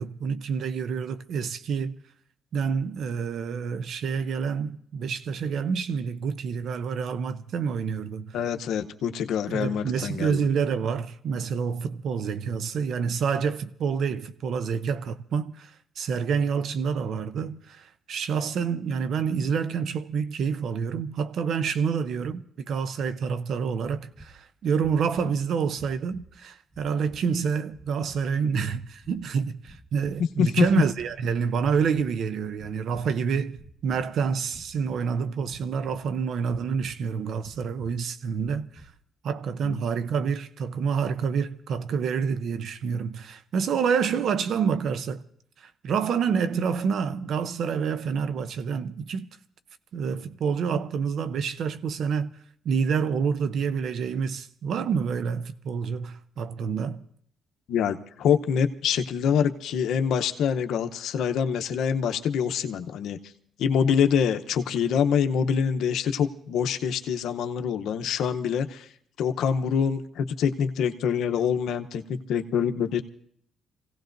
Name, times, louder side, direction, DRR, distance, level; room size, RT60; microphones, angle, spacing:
voice 1, 0.0-2.0 2.5-8.4 9.5-38.8 39.2-45.2 45.6-49.3 49.9-52.3 52.6-57.0, right 6 dB, 65° right, 0.6 m, -28 dB
voice 2, 8.3-10.4 30.4-30.6 39.6-39.8 57.7-63.2 63.6-68.9 69.2-73.0, left 7 dB, 80° left, 0.8 m, -25 dB
sound 1, 24.1-24.4 24.8-25.4 25.7-26.4 26.7-27.3 27.7-28.2 28.6-29.3 29.6-30.3 30.6-31.2 31.6-32.1 32.5-33.2 33.5-34.1 34.5-35.0 35.5-36.1 36.4-37.0 37.4-38.0 38.4-39.0, right 1 dB, 10° right, 1.2 m, -51 dB
27.5 x 17.0 x 2.6 m
cardioid pair, 90°, 0 cm